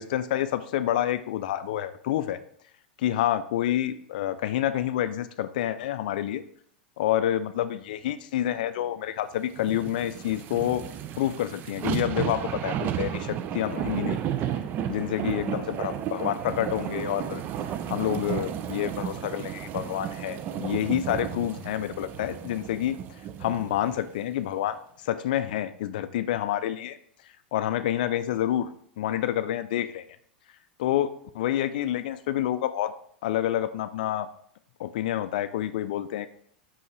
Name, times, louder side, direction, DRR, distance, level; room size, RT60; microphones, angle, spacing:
voice 1, 0.0-2.4 3.0-6.4 7.0-10.9 11.2-14.2 14.9-17.4 17.9-23.0 23.4-24.8 25.0-27.0 27.5-28.7 29.0-30.0 30.8-32.9 33.2-34.3 34.8-36.3, left 12 dB, 60° left, 12 dB, 0.4 m, -28 dB
sound 1, 9.5-24.0 24.4-24.5, right 9 dB, 35° right, 0.4 m, -33 dB
5.4 x 5.3 x 3.3 m, 0.63 s
figure-of-eight pair, 90°, 5 cm